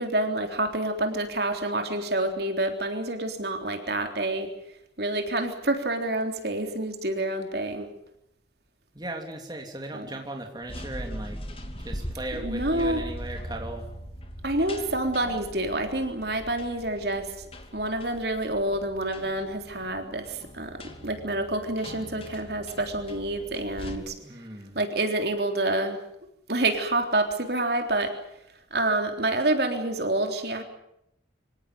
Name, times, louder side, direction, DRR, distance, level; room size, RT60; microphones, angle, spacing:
voice 1, 0.0-4.5 5.0-7.9 9.9-10.1 12.3-13.0 14.4-17.3 17.7-24.1 24.7-26.0 26.5-28.1 28.7-30.6, right 2 dB, 55° right, 5 dB, 3.6 m, -28 dB
voice 2, 8.9-11.4 11.8-13.9 24.2-24.8, right 2 dB, 20° right, 2 dB, 3.2 m, -37 dB
sound 1, 10.6-24.0, equal, 30° left, 2.5 m, -41 dB
26.0 x 17.5 x 9.4 m, 0.77 s
head